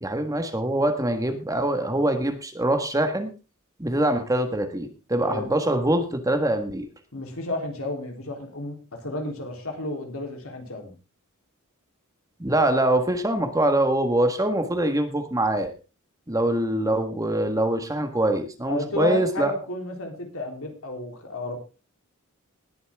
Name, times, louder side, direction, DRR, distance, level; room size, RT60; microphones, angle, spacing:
voice 1, 0.0-3.3 3.8-6.9 12.4-15.7 16.3-19.5, right 1 dB, 15° right, 6 dB, 1.6 m, -24 dB
voice 2, 7.1-10.9 18.7-21.6, left 2 dB, 70° left, 2 dB, 3.6 m, -32 dB
19.5 x 8.5 x 3.6 m, 0.32 s
head